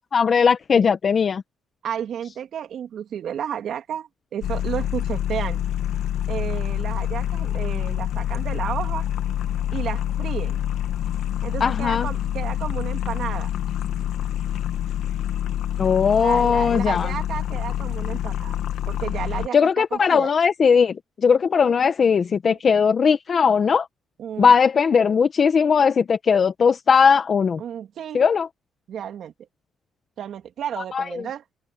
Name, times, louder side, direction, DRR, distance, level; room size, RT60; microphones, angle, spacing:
voice 1, 0.1-1.4 11.6-12.1 15.8-17.1 19.5-23.9 24.4-27.6 28.1-28.5 30.9-31.0, left 6 dB, 45° left, 1.6 m, -18 dB
voice 2, 1.8-5.6 6.3-9.0 9.7-10.6 11.4-13.5 16.2-18.6 18.9-19.6 19.9-20.3 24.2-24.5 27.6-28.2 28.9-29.3 30.2-31.4, right 9 dB, 65° right, 3.0 m, -32 dB
sound 1, 4.4-19.5, left 11 dB, 80° left, 1.9 m, -27 dB
open air
cardioid pair, 90°, 0 cm